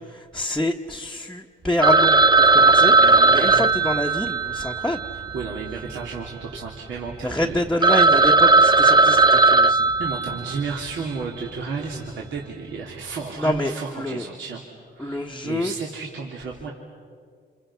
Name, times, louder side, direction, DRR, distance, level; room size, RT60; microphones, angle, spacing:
voice 1, 0.0-2.9 3.3-5.0 7.2-9.9 13.4-14.3 15.0-15.7, left 1 dB, 5° left, 1 dB, 1.2 m, -27 dB
Telephone, 1.8-6.2 6.4-6.5 7.1-7.2 7.5-7.6 7.8-10.8, right 3 dB, 20° right, 0.6 m, -17 dB
voice 2, 2.5-3.7 5.3-7.6 10.0-14.6 14.9-16.7, right 5 dB, 70° right, -2 dB, 3.2 m, -33 dB
29.5 x 28.0 x 5.8 m, 2.1 s
cardioid pair, 90°, 20 cm